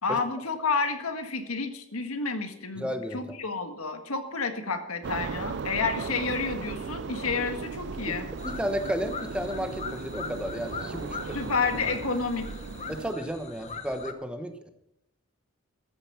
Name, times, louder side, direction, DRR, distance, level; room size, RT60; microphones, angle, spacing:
voice 1, 0.0-8.3 11.3-12.5, left 4 dB, 85° left, 7 dB, 1.6 m, -30 dB
voice 2, 2.8-3.2 8.0-8.2 8.4-11.5 12.9-14.7, equal, 5° right, 7 dB, 1.0 m, -33 dB
sound 1, 5.0-13.1, right 5 dB, 55° right, 0.4 m, -37 dB
sound 2, 8.4-14.1, left 5 dB, 30° left, 1.0 m, -40 dB
13.0 x 9.1 x 5.9 m, 0.82 s
head